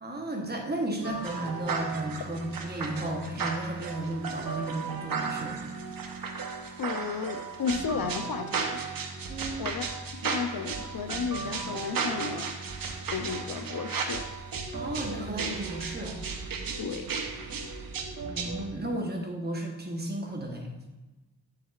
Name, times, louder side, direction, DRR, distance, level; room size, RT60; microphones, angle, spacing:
voice 1, 0.0-5.6 9.3-9.7 14.7-16.2 18.2-20.7, right 1 dB, 25° right, 1 dB, 1.0 m, -34 dB
sound 1, 1.0-18.7, right 5 dB, 55° right, 0.8 m, -35 dB
voice 2, 6.8-8.8 9.6-9.9 10.1-12.5 13.1-14.3 16.8-17.1, left 5 dB, 60° left, 8 dB, 0.6 m, -33 dB
9.5 x 7.3 x 2.4 m, 1.1 s
wide cardioid pair, 180°, 40 cm